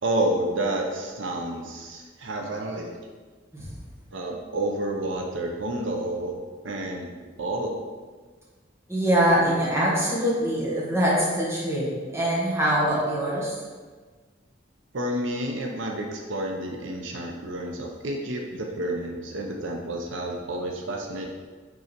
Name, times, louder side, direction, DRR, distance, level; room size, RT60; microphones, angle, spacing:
voice 1, 0.0-2.9 4.1-6.4 6.6-7.1 7.4-7.8 14.9-21.3, right 1 dB, 80° right, 1 dB, 0.7 m, -29 dB
voice 2, 8.9-13.6, right 1 dB, 15° right, -5 dB, 1.4 m, -23 dB
5.5 x 3.8 x 4.4 m, 1.4 s
head